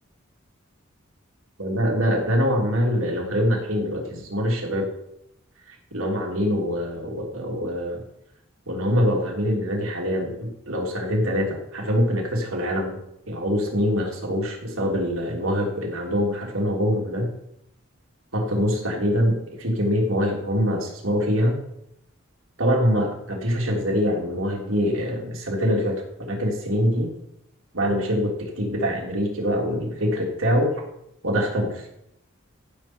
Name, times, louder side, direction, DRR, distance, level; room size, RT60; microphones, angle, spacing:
voice 1, 1.6-4.9 5.7-8.0 8.7-13.0 13.3-17.3 18.3-21.6 22.6-26.0 26.3-27.1 27.7-30.7 31.2-31.9, equal, 85° right, -1 dB, 3.3 m, -24 dB
15.0 x 7.3 x 4.6 m, 0.79 s
head